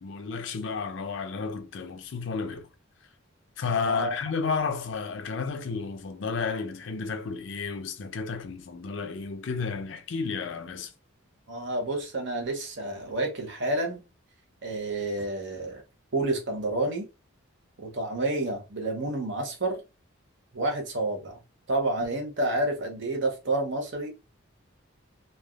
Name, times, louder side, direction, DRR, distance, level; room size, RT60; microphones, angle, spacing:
voice 1, 0.0-2.7 3.6-10.9, left 5 dB, 60° left, 0.5 m, -32 dB
voice 2, 11.5-14.0 14.6-15.8 16.1-17.1 17.8-19.8 20.5-21.4 21.7-24.1, right 2 dB, 60° right, 0.8 m, -29 dB
3.2 x 2.3 x 2.3 m
head